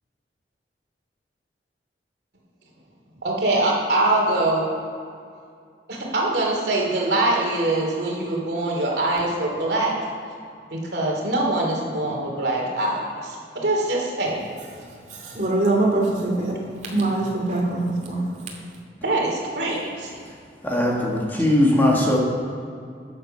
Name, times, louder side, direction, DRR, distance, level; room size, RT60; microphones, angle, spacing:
voice 1, 3.2-4.6 5.9-9.9 10.7-14.4 19.0-20.1, right 2 dB, 65° right, -2 dB, 2.9 m, -23 dB
voice 2, 15.1-16.5 16.9-18.3, right 2 dB, 45° right, -2 dB, 2.7 m, -23 dB
voice 3, 20.6-22.2, left 1 dB, 10° left, -2 dB, 1.5 m, -19 dB
13.5 x 7.8 x 5.5 m, 2.3 s
head